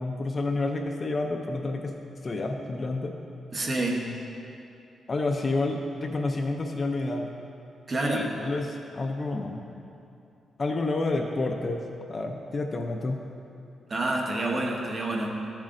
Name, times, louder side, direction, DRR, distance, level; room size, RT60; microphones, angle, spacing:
voice 1, 0.0-1.9 2.2-3.1 5.1-7.3 8.0-9.7 10.6-11.8 12.1-13.2, left 2 dB, 30° left, 3 dB, 0.4 m, -29 dB
voice 2, 3.5-4.1 7.9-8.3 13.9-15.3, right 2 dB, 30° right, 0 dB, 0.9 m, -28 dB
12.5 x 7.3 x 2.5 m, 2.7 s
wide cardioid pair, 165°, 0 cm